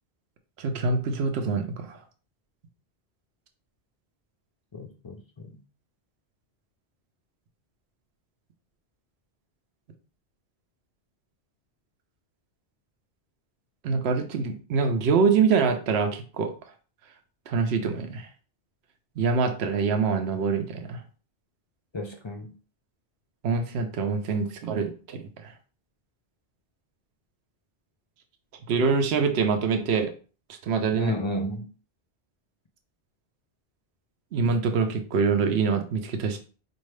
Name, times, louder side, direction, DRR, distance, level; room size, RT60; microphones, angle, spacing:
voice 1, 0.6-2.0 13.8-16.5 17.5-18.3 19.2-21.0 23.4-25.5 28.7-30.1 30.6-31.1 34.3-36.4, right 5 dB, 70° right, 6 dB, 0.9 m, -25 dB
voice 2, 4.7-5.6 21.9-22.5 30.9-31.7, left 1 dB, 45° left, 3 dB, 0.3 m, -32 dB
4.5 x 2.7 x 3.2 m, 0.37 s
omnidirectional pair, 1.1 m